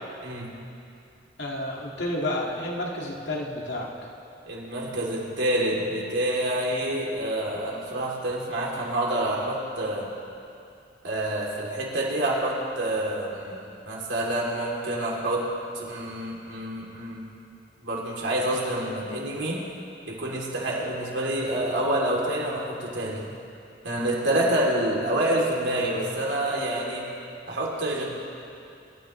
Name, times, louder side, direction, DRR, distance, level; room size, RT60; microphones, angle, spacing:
voice 1, 1.4-3.9, left 1 dB, 75° left, -2 dB, 2.1 m, -30 dB
voice 2, 4.5-10.1 11.0-15.4 15.7-17.3 17.8-19.6 20.1-23.2 23.8-27.1 27.5-28.1, right 1 dB, 75° right, -3 dB, 3.1 m, -27 dB
25.5 x 13.5 x 3.3 m, 2.5 s
head